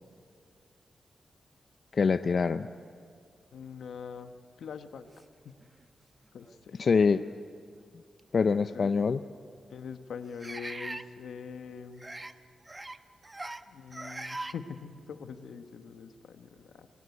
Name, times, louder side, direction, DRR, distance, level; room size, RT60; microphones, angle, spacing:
voice 1, 1.9-2.7 6.8-7.2 8.3-9.2, left 5 dB, 60° left, 11 dB, 0.5 m, -24 dB
voice 2, 3.5-5.1 5.4-5.5 6.3-6.8 8.7-8.9 9.7-12.1 13.7-16.9, left 6 dB, 85° left, 8 dB, 1.2 m, -43 dB
sound 1, 5.6-5.7 6.4-6.6 8.2-8.3 10.4-11.1 12.0-12.3 12.7-13.0 13.2-13.6 13.9-14.6, right 2 dB, 25° right, 0.9 m, -40 dB
22.5 x 17.0 x 9.4 m, 2.3 s
cardioid pair, 70°, 0 cm